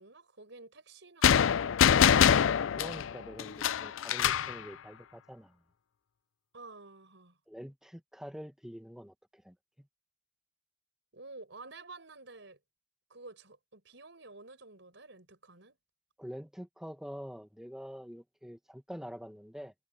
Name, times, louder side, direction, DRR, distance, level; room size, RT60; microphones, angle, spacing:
voice 1, 0.0-2.2 6.5-7.4 11.1-12.6 13.1-15.8, right 3 dB, 65° right, 5.1 m, -51 dB
sound 1, 1.2-4.6, left 8 dB, 75° left, 0.4 m, -24 dB
voice 2, 2.7-5.6 7.5-9.9 16.2-19.7, equal, 5° right, 1.0 m, -46 dB
head